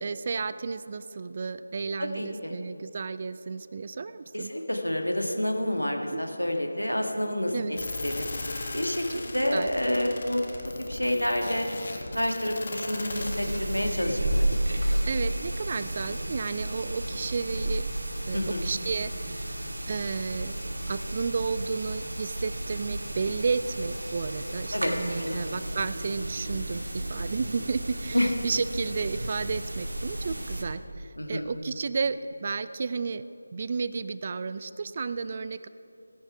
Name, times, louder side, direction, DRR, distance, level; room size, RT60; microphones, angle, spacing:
voice 1, 0.0-4.5 6.1-6.2 7.5-7.7 9.1-9.2 9.5-9.7 15.1-17.9 18.3-20.6 20.9-33.2 33.5-35.7, right 4 dB, 35° right, 14 dB, 0.4 m, -32 dB
voice 2, 2.0-2.5 4.3-8.3 8.7-10.4 10.9-11.7 12.1-14.5 14.9-15.0 18.3-18.6 24.7-24.9 25.2-25.6 28.1-28.3 31.2-31.5, left 1 dB, 90° left, 3 dB, 1.8 m, -28 dB
sound 1, 7.8-14.0, left 2 dB, 45° left, 1.4 m, -37 dB
sound 2, 13.1-30.6, right 1 dB, 65° right, 2.0 m, -32 dB
17.0 x 10.5 x 4.7 m, 2.8 s
figure-of-eight pair, 160°, 0 cm